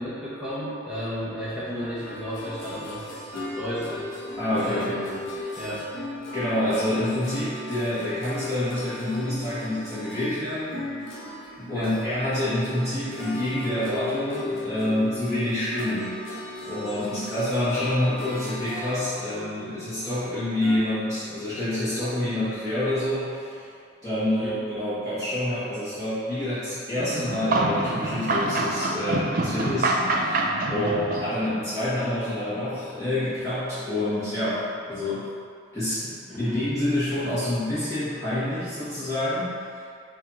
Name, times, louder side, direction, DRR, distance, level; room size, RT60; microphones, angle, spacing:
voice 1, 0.0-4.1 4.5-5.2 5.6-5.9 11.7-12.0 24.4-24.6 30.7-31.0 36.3-36.7, equal, 5° right, -11 dB, 0.9 m, -33 dB
sound 1, 1.6-20.8, left 1 dB, 45° left, 1.5 m, -41 dB
sound 2, 2.0-11.6 11.8-18.9, left 1 dB, 90° left, 1.1 m, -39 dB
voice 2, 4.4-5.0 6.3-10.8 11.6-16.2 16.6-23.7 24.0-30.4 30.7-35.2 35.7-39.5, left 1 dB, 15° left, -15 dB, 1.2 m, -27 dB
sound 3, 26.9-31.6, right 2 dB, 45° right, 0.4 m, -26 dB
4.8 x 2.6 x 4.2 m, 2.3 s
head